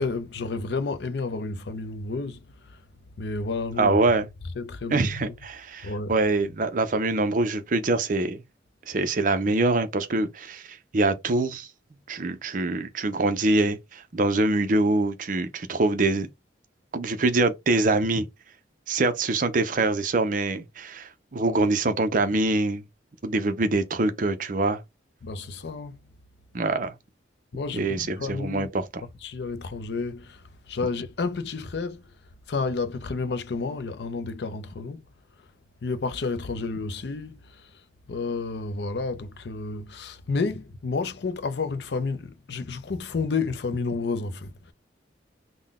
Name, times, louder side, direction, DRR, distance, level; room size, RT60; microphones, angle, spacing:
voice 1, 0.0-2.4 2.7-2.8 3.2-4.0 4.6-5.3 5.8-6.1 25.2-26.0 27.5-28.7 29.2-32.0 32.5-35.0 35.8-37.7 38.1-44.7, left 4 dB, 60° left, 0.5 m, -31 dB
voice 2, 3.8-4.3 4.9-8.4 8.9-11.7 12.1-16.3 16.9-18.3 18.9-22.8 23.2-24.8 26.5-26.9 27.7-29.0, right 2 dB, 45° right, 0.5 m, -24 dB
3.8 x 2.1 x 3.5 m
head